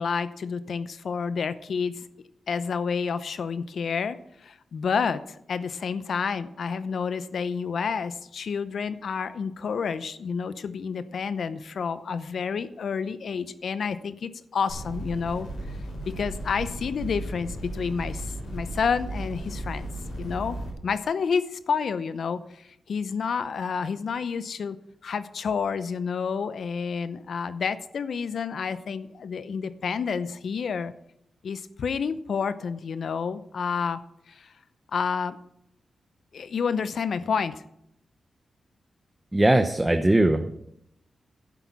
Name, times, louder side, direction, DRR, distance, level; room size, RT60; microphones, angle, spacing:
voice 1, 0.0-2.1 2.5-15.5 16.0-19.9 20.2-24.8 25.0-30.9 31.4-34.0 34.3-34.5 34.9-35.4 36.3-37.6, left 6 dB, 70° left, 13 dB, 0.7 m, -29 dB
sound 1, 14.7-20.7, right 1 dB, 90° left, 5.1 m, -35 dB
voice 2, 39.3-40.6, right 1 dB, 15° right, 8 dB, 0.8 m, -20 dB
11.0 x 7.9 x 5.8 m, 0.77 s
cardioid pair, 65°, 0 cm